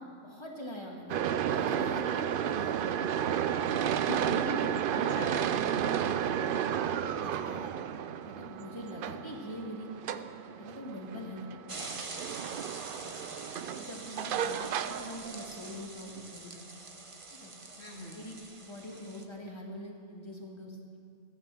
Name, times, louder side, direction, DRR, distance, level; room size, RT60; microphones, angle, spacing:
voice 1, 0.0-2.9 3.6-3.8 4.5-4.6 4.9-5.3 5.9-7.7 8.2-10.3 10.6-12.3 13.0-13.1 13.7-17.0 17.3-17.5 18.1-20.8, equal, 20° left, -1 dB, 2.0 m, -44 dB
sound 1, 1.1-15.8, right 9 dB, 60° right, 0.6 m, -32 dB
voice 2, 4.0-5.4 13.2-13.7 14.3-14.5 17.8-18.2, left 2 dB, 60° left, -1 dB, 2.0 m, -42 dB
sound 2, 11.7-19.2, right 3 dB, 30° right, 0.9 m, -45 dB
15.0 x 9.3 x 7.5 m, 2.1 s
omnidirectional pair, 1.3 m